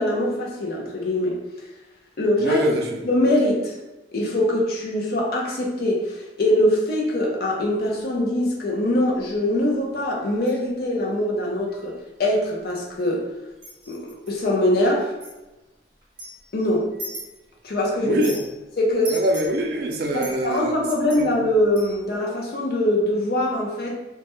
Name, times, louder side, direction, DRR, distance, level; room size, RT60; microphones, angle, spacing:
voice 1, 0.0-1.4 2.2-2.6 3.0-3.8 4.1-13.3 13.9-15.1 16.5-16.9 17.6-18.3 18.8-19.2 20.1-24.0, left 1 dB, 55° left, -2 dB, 0.5 m, -23 dB
voice 2, 2.4-3.0 18.0-18.3 19.1-20.8, right 1 dB, 55° right, 2 dB, 0.3 m, -24 dB
sound 1, 7.7-8.0 9.2-9.4 9.9-10.6 11.0-11.1 11.7-11.9 12.2-13.1 13.6-14.3 15.2-15.3 16.0-17.7 18.0-18.5 19.0-22.2, equal, 30° right, 0.8 m, -40 dB
2.2 x 2.1 x 2.9 m, 1.0 s
head